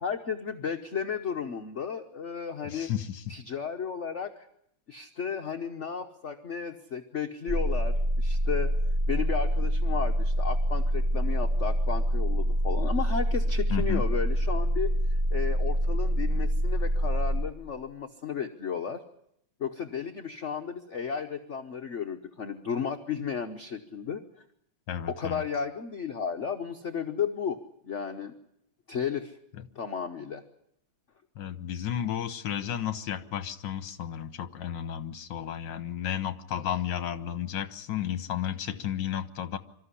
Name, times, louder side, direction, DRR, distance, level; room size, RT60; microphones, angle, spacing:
voice 1, 0.0-2.9 3.3-4.5 4.9-8.7 9.1-14.9 15.3-19.0 19.6-24.2 25.1-27.6 27.8-28.3 28.9-29.4 29.7-30.4, left 6 dB, 45° left, 5 dB, 1.1 m, -33 dB
voice 2, 2.6-3.2 13.7-14.0 24.9-25.4 31.4-39.6, left 10 dB, 65° left, 12 dB, 1.8 m, -33 dB
sound 1, 7.5-17.5, equal, 40° right, 1.2 m, -26 dB
25.5 x 13.5 x 9.9 m, 0.75 s
omnidirectional pair, 2.2 m